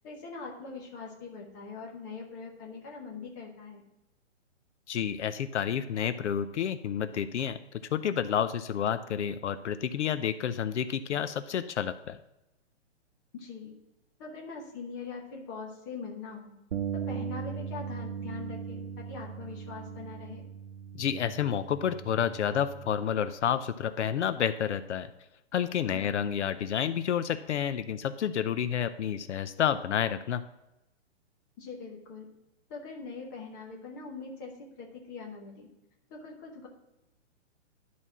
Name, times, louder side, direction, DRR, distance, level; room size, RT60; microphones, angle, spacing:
voice 1, 0.0-3.8 8.8-8.9 13.3-13.7 14.2-16.5 16.9-20.5 25.8-26.2 31.6-32.3 32.7-34.5 34.8-35.7 36.1-36.7, left 4 dB, 15° left, -1 dB, 1.0 m, -42 dB
voice 2, 4.9-7.6 7.9-12.2 20.9-25.1 25.5-30.4, left 9 dB, 75° left, 12 dB, 0.6 m, -30 dB
Bass guitar, 16.7-23.0, right 7 dB, 65° right, 1.0 m, -38 dB
11.0 x 4.3 x 6.0 m, 0.91 s
hypercardioid pair, 175°, 35 cm